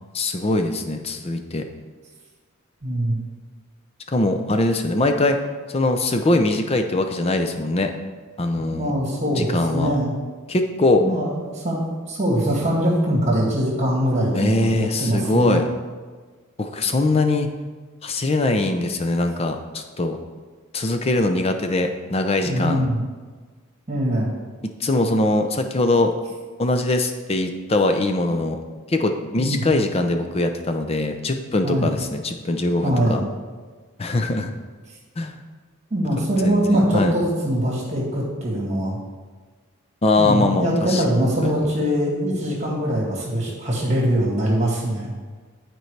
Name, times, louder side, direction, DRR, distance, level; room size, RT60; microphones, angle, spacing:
voice 1, 0.1-1.6 4.1-5.4 5.7-7.9 8.4-8.9 9.4-9.9 10.5-11.0 14.3-15.6 16.6-17.5 18.0-20.2 20.7-22.8 24.6-26.1 26.6-28.6 28.9-33.2 34.0-34.5 35.2-35.4 36.2-37.1 40.0-41.0 41.4-41.6, left 2 dB, 25° left, 6 dB, 0.5 m, -22 dB
voice 2, 2.8-3.2 8.6-10.1 11.0-15.6 22.4-23.0 23.9-24.3 29.4-29.6 31.6-31.9 32.8-33.3 35.9-39.0 40.2-45.1, equal, 30° right, -4 dB, 2.0 m, -22 dB
12.0 x 4.5 x 3.2 m, 1.4 s
head